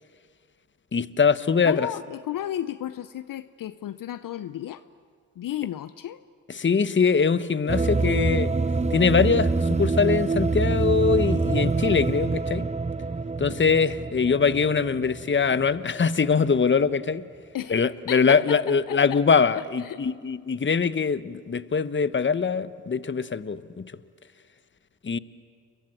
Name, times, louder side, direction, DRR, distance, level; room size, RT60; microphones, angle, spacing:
voice 1, 0.9-1.9 6.5-8.5 8.9-12.7 13.4-17.2 17.7-23.9 25.0-25.2, left 5 dB, 30° left, 1.1 m, -23 dB
voice 2, 1.6-4.8 5.4-6.2 17.5-18.4 18.7-19.2 19.5-20.0, left 11 dB, 60° left, 0.8 m, -33 dB
sound 1, 7.7-15.9, right 3 dB, 20° right, 0.9 m, -26 dB
30.0 x 23.5 x 7.7 m
hypercardioid pair, 40°, 38 cm